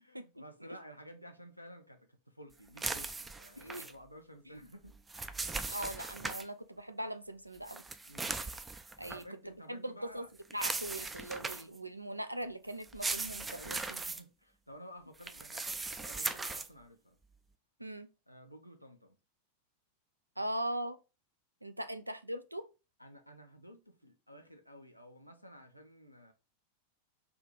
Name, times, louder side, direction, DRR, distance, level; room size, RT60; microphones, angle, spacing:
voice 1, 0.0-5.0 8.1-8.6 9.1-10.3 13.5-17.2 18.3-19.2 23.0-26.3, equal, 90° left, 0.6 m, -53 dB
sound 1, 2.8-3.9 4.9-6.5 7.7-9.2 10.5-11.8 12.8-14.2 15.2-16.7, right 3 dB, 10° right, 0.3 m, -38 dB
voice 2, 3.6-3.9 4.5-4.6 5.7-7.8 9.0-10.3 10.5-14.0 17.8-18.1 20.4-21.0 21.6-22.7, right 1 dB, 85° right, 0.4 m, -40 dB
3.5 x 2.4 x 4.4 m
figure-of-eight pair, 90°, 0 cm